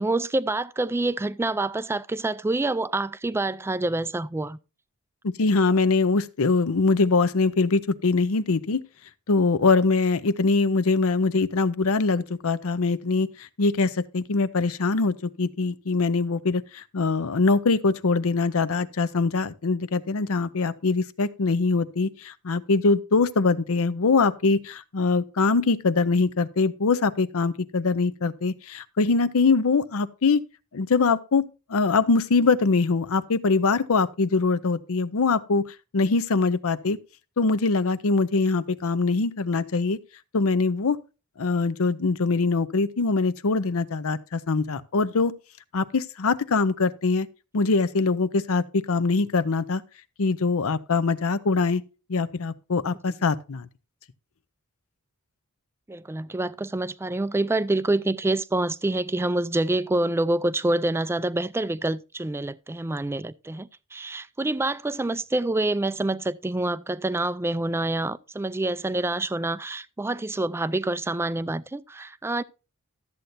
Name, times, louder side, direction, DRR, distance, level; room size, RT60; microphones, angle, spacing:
voice 1, 0.0-4.6 53.1-53.2 55.9-72.4, right 2 dB, 10° right, 0.3 m, -27 dB
voice 2, 5.2-8.8 9.3-13.3 13.6-30.4 30.7-31.4 31.7-35.6 35.9-37.0 37.4-40.0 40.3-41.0 41.4-45.3 45.7-47.3 47.5-49.8 50.2-51.8 52.1-53.7, left 4 dB, 65° left, 0.6 m, -23 dB
13.0 x 7.9 x 2.6 m
head